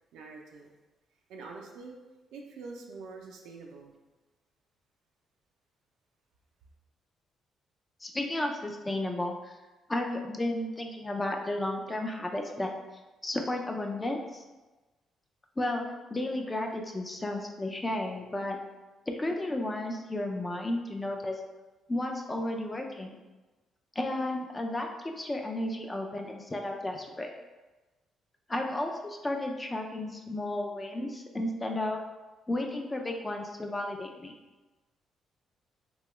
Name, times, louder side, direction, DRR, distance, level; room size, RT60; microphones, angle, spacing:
voice 1, 0.1-0.7 1.3-1.9 2.3-3.9, right 4 dB, 90° right, 0 dB, 0.4 m, -45 dB
voice 2, 8.0-9.6 9.9-12.7 13.2-14.4 15.6-15.8 16.1-18.6 19.1-21.4 21.9-23.2 24.0-27.3 28.5-32.0 32.5-34.3, left 1 dB, 20° left, 2 dB, 0.4 m, -33 dB
2.8 x 2.2 x 3.0 m, 1.2 s
cardioid pair, 90°, 0 cm